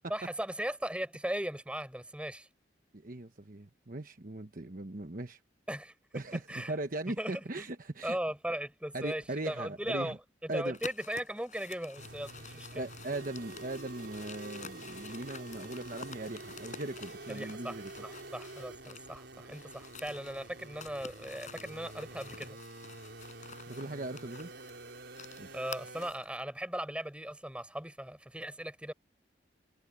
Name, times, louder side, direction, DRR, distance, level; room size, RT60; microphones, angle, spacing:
voice 1, 0.1-2.5 5.7-5.9 6.5-6.7 7.2-7.7 8.0-10.2 10.4-12.8 17.3-22.6 25.5-28.9, right 1 dB, 5° right, 5.6 m, -38 dB
voice 2, 2.9-5.4 6.1-8.2 8.9-10.2 10.5-10.8 12.7-17.9 23.7-24.5 25.4-25.6, right 2 dB, 50° right, 1.1 m, -39 dB
sound 1, 10.7-19.2 19.5-26.3, left 6 dB, 40° left, 6.6 m, -50 dB
sound 2, 12.0-26.1, right 2 dB, 70° right, 4.7 m, -48 dB
head